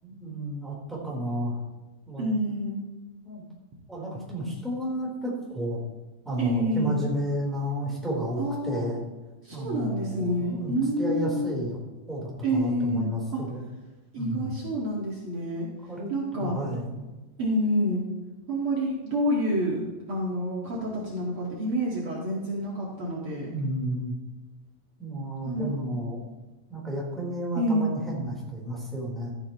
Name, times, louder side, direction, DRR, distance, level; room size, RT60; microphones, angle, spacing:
voice 1, 0.0-1.6 2.1-2.3 3.2-3.4 3.9-5.8 6.2-9.0 9.5-11.8 12.1-13.6 14.1-14.5 15.9-16.1 16.4-17.0 23.5-24.1 25.0-26.2 26.7-29.3, equal, ahead, -5 dB, 2.8 m, -32 dB
voice 2, 2.2-2.8 6.4-7.0 8.4-8.8 9.4-11.5 12.4-13.4 14.1-15.7 16.1-16.6 17.4-18.0 18.5-19.8 20.1-23.5 25.4-25.7 27.5-27.9, equal, 90° right, -4 dB, 1.1 m, -28 dB
14.0 x 11.5 x 3.1 m, 1.2 s
omnidirectional pair, 5.8 m